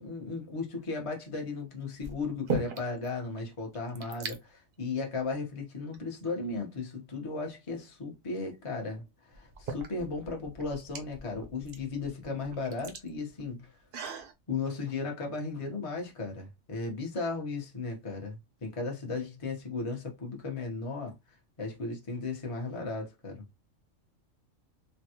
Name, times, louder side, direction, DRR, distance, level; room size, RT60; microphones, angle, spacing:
voice 1, 0.0-13.8 14.5-21.2 21.6-23.5, left 3 dB, 30° left, 0.8 m, -36 dB
sound 1, 0.8-1.2 2.0-3.1 3.4-3.5 3.7-4.4 5.2-5.3 5.9-6.8 8.5-8.6 9.3-14.3, right 4 dB, 55° right, 0.7 m, -39 dB
3.4 x 2.2 x 2.8 m
omnidirectional pair, 1.3 m